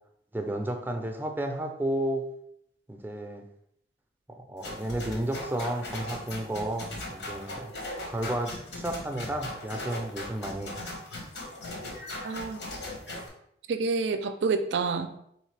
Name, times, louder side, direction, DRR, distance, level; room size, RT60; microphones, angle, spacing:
voice 1, 0.3-2.2 2.9-3.5 4.5-7.7 8.1-10.8, right 1 dB, 10° right, 4 dB, 0.4 m, -32 dB
sound 1, 4.6-13.3, left 1 dB, 90° left, 0.9 m, -39 dB
voice 2, 12.2-12.7 13.7-15.2, right 4 dB, 85° right, 8 dB, 0.4 m, -28 dB
3.6 x 3.1 x 3.2 m, 0.73 s
head